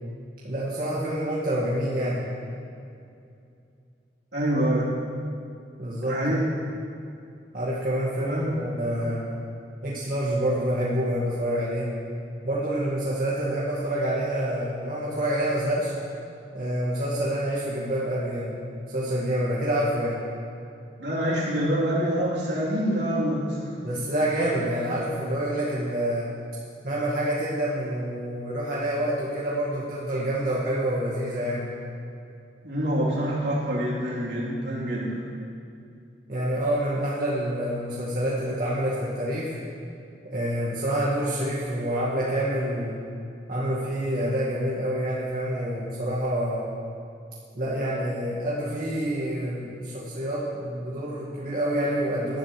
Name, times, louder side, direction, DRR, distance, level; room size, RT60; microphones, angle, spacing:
voice 1, 0.4-2.2 5.8-6.4 7.5-9.3 9.8-11.9 12.4-15.9 16.5-18.5 18.9-20.2 23.8-26.3 26.8-31.7 36.3-39.5 40.2-43.0 43.5-46.7 47.6-52.4, right 1 dB, 55° right, -8 dB, 2.0 m, -27 dB
voice 2, 4.3-4.9 6.0-6.4 8.2-8.5 21.0-23.7 32.6-35.2, equal, 75° right, -7 dB, 3.5 m, -26 dB
18.5 x 11.5 x 3.3 m, 2.5 s
head